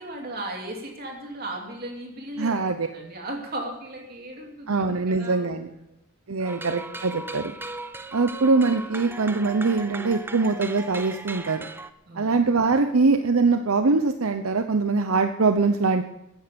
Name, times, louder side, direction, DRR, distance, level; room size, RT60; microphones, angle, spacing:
voice 1, 0.0-2.6 2.9-6.0 6.4-6.7 12.1-12.3, right 1 dB, 45° right, 1 dB, 2.9 m, -36 dB
voice 2, 2.4-2.9 4.7-5.7 6.3-7.5 8.1-11.6 12.2-16.0, right 4 dB, 90° right, 7 dB, 0.8 m, -22 dB
sound 1, 6.5-11.9, right 2 dB, 10° right, 0.6 m, -37 dB
14.5 x 10.5 x 7.0 m, 0.85 s
head